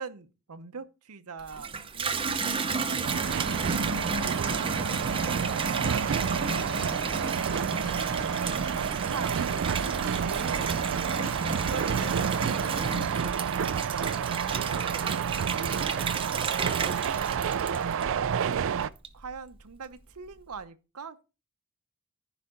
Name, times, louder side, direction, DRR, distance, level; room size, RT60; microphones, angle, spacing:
voice 1, 0.0-6.5 7.1-7.5 8.1-16.5 17.1-17.2 17.8-18.5 19.1-21.2, right 5 dB, 90° right, 0.8 m, -44 dB
Water tap faucet / Bathtub (filling or washing), 1.4-18.3 18.8-19.4, right 4 dB, 25° right, 0.7 m, -33 dB
sound 1, 3.0-18.9, right 7 dB, 60° right, 0.4 m, -29 dB
sound 2, 5.7-13.0, left 1 dB, 65° left, 2.7 m, -44 dB
14.5 x 5.1 x 3.7 m
head